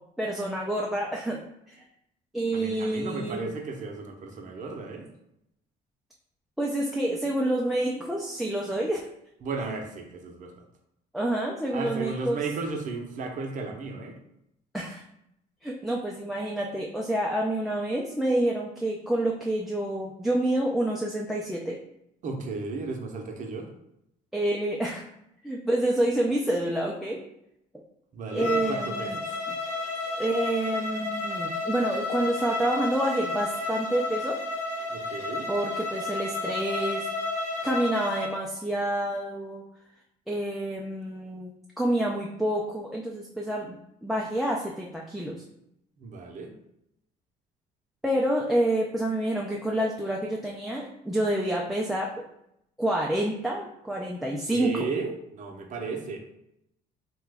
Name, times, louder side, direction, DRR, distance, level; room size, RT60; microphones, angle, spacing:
voice 1, 0.2-1.4 2.3-3.5 6.6-9.1 11.1-12.4 14.7-15.0 15.6-21.8 24.3-25.0 25.4-27.2 28.3-29.2 29.5-29.6 30.2-34.4 35.5-37.1 37.6-39.6 40.3-45.3 48.0-52.1 52.8-54.7, right 1 dB, ahead, -2 dB, 0.3 m, -28 dB
voice 2, 2.5-5.0 9.4-10.5 11.7-14.1 22.2-23.7 28.1-29.1 34.9-35.5 46.0-46.5 54.4-56.2, right 4 dB, 50° right, 3 dB, 0.6 m, -34 dB
Bowed string instrument, 28.3-38.3, left 2 dB, 40° left, 0.7 m, -32 dB
2.9 x 2.2 x 3.3 m, 0.80 s
cardioid pair, 110°, 17 cm